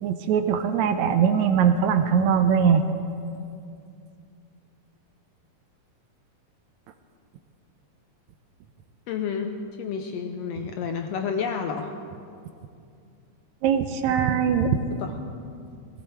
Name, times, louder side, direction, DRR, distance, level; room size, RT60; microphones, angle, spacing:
voice 1, 0.0-2.8 13.6-14.8, right 7 dB, 75° right, 8 dB, 1.9 m, -21 dB
voice 2, 9.1-11.9 15.0-15.1, left 6 dB, 75° left, 5 dB, 1.5 m, -30 dB
17.5 x 15.5 x 4.5 m, 2.4 s
omnidirectional pair, 3.5 m